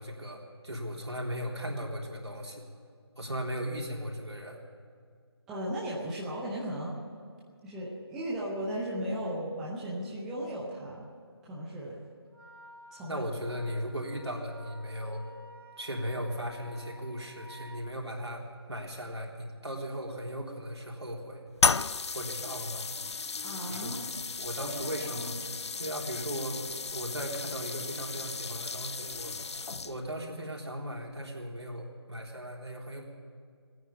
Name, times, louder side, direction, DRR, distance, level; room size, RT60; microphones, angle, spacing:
voice 1, 0.0-2.6 3.2-4.6 13.1-15.2 15.8-18.4 18.7-21.4 22.1-22.9 23.7-23.9 24.4-25.3 25.8-29.3 29.8-33.1, equal, 75° right, -1 dB, 3.6 m, -37 dB
voice 2, 5.5-6.9 7.6-11.1 11.4-12.0 12.9-13.2 23.4-24.0 24.5-25.3, equal, ahead, -6 dB, 0.4 m, -36 dB
Wind instrument woodwind instrument, 12.3-17.8, equal, 60° right, 2.8 m, -52 dB
sound 1, 21.6-30.2, left 4 dB, 80° left, 0.4 m, -34 dB
17.0 x 9.6 x 8.6 m, 2.1 s
figure-of-eight pair, 160°, 14 cm